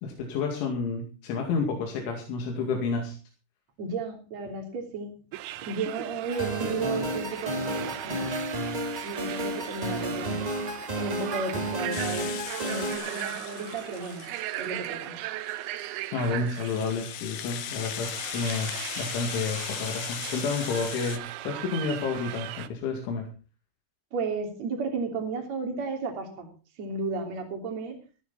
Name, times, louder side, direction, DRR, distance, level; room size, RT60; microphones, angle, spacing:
voice 1, 0.0-3.2 16.1-18.7 19.0-23.3, left 4 dB, 90° left, 1 dB, 4.8 m, -30 dB
voice 2, 3.8-5.1 5.7-8.3 9.0-10.5 10.9-14.3 14.6-15.2 24.1-26.5 26.8-28.0, right 4 dB, 40° right, 3 dB, 3.8 m, -33 dB
sound 1, 5.3-22.7, right 14 dB, 80° right, 3.2 m, -38 dB
sound 2, 6.3-13.0, right 1 dB, 15° right, 1.3 m, -32 dB
Rattle (instrument), 11.9-15.0 15.5-21.2, left 12 dB, 70° left, 2.6 m, -38 dB
15.5 x 14.0 x 4.3 m, 0.35 s
omnidirectional pair, 5.3 m